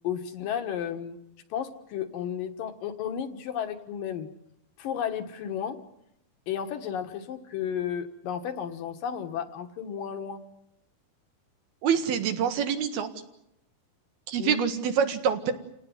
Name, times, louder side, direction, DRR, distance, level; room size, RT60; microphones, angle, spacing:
voice 1, 0.0-1.2 1.5-4.3 4.8-5.8 6.5-10.4 14.4-14.6, left 8 dB, 70° left, 6 dB, 3.0 m, -33 dB
voice 2, 11.8-13.1 14.3-15.5, right 7 dB, 85° right, 7 dB, 3.6 m, -26 dB
28.5 x 17.5 x 9.7 m, 0.84 s
omnidirectional pair, 4.3 m